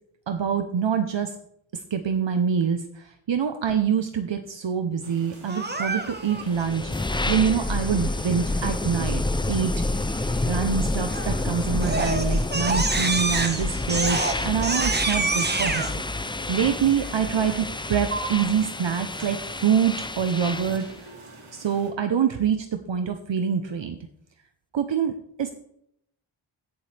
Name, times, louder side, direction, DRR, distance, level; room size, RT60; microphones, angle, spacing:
voice 1, 0.3-1.3 1.7-6.9 7.3-9.2 9.5-9.7 10.1-20.9 21.5-24.0 24.7-25.5, right 7 dB, 60° right, 7 dB, 0.9 m, -25 dB
sound 1, 5.0-21.9, right 3 dB, 80° right, 2.8 m, -44 dB
Crying sobbing, 5.5-6.4 11.1-11.4 11.8-15.9, right 2 dB, 20° right, 1.2 m, -26 dB
sound 2, 6.3-20.9, left 2 dB, 10° left, 0.4 m, -29 dB
16.0 x 7.2 x 3.4 m, 0.72 s
wide cardioid pair, 100°, 50 cm